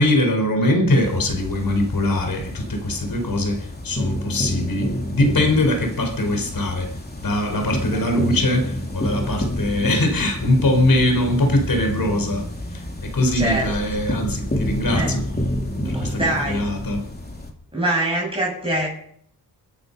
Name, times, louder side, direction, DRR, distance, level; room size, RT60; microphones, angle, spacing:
voice 1, 0.0-6.9 7.2-12.5 12.7-15.2 15.8-16.2 16.4-17.0, left 1 dB, 55° left, 5 dB, 4.8 m, -22 dB
sound 1, 0.9-17.5, left 1 dB, 25° left, 3.3 m, -29 dB
voice 2, 13.3-13.7 14.9-15.1 15.8-16.6 17.7-18.9, right 1 dB, 15° right, -4 dB, 6.6 m, -24 dB
24.0 x 9.5 x 5.6 m, 0.66 s
cardioid pair, 60°, 40 cm